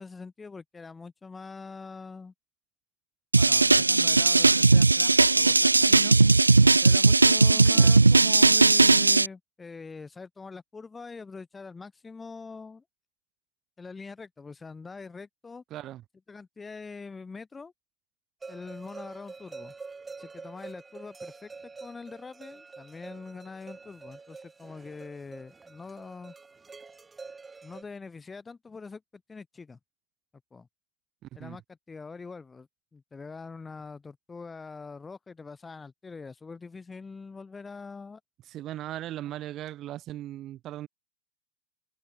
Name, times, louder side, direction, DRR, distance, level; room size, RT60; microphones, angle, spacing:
voice 1, 0.0-2.3 3.4-6.2 6.8-12.8 13.8-15.6 16.3-17.7 18.5-19.7 20.2-21.5 21.8-26.3 27.6-29.8 30.5-30.7 31.3-38.2, left 4 dB, 15° left, 4.1 m, -43 dB
sound 1, 3.3-9.3, right 3 dB, 80° right, 0.4 m, -18 dB
voice 2, 7.5-8.0 15.7-16.0 31.2-31.6 38.5-40.9, right 13 dB, 35° right, 4.1 m, -38 dB
sound 2, 18.4-27.8, right 4 dB, 15° right, 2.0 m, -46 dB
figure-of-eight pair, 90°, 0 cm